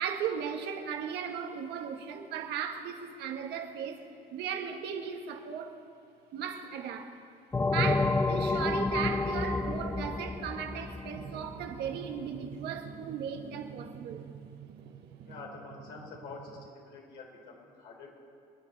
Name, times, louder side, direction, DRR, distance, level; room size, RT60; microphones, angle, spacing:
voice 1, 0.0-4.0 4.3-5.8 6.3-7.2 7.7-14.3, right 7 dB, 80° right, 1.5 m, -36 dB
sound 1, 7.5-11.9, left 3 dB, 15° left, 0.4 m, -30 dB
Drum, 11.1-16.7, right 8 dB, 50° right, 0.7 m, -48 dB
voice 2, 15.2-18.1, left 4 dB, 85° left, 4.2 m, -47 dB
26.5 x 9.5 x 4.1 m
cardioid pair, 110°, 17 cm